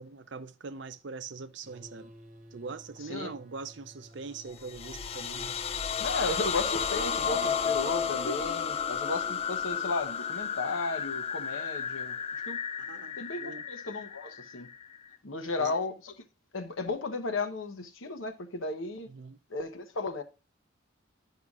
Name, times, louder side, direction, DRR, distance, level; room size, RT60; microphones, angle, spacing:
voice 1, 0.0-2.1 2.5-5.6 12.8-13.2 13.4-13.6 15.4-15.7 19.1-19.4, right 4 dB, 65° right, 0.6 m, -42 dB
sound 1, 1.6-6.6, right 1 dB, 35° right, 1.0 m, -53 dB
voice 2, 3.0-3.3 6.0-12.2 12.4-12.6 13.2-14.7 15.2-16.1 16.5-19.1 19.5-20.2, left 3 dB, 80° left, 0.9 m, -34 dB
sound 2, 4.5-15.2, left 7 dB, 30° left, 0.4 m, -33 dB
11.0 x 5.7 x 2.4 m
head